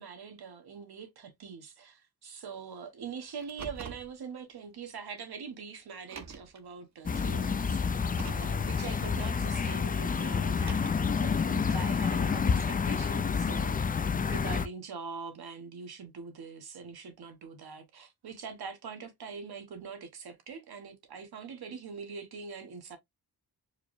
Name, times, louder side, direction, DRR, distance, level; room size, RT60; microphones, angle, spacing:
voice 1, 0.0-7.8 8.2-13.7 14.3-23.0, right 5 dB, 80° right, 1.4 m, -43 dB
Car, 3.4-4.1 5.2-5.3 6.0-6.6 7.9-8.6 10.4-11.1, right 5 dB, 45° right, 0.8 m, -44 dB
sound 1, 7.1-14.7, left 5 dB, 25° left, 0.3 m, -29 dB
4.6 x 2.1 x 3.2 m
cardioid pair, 75°, 38 cm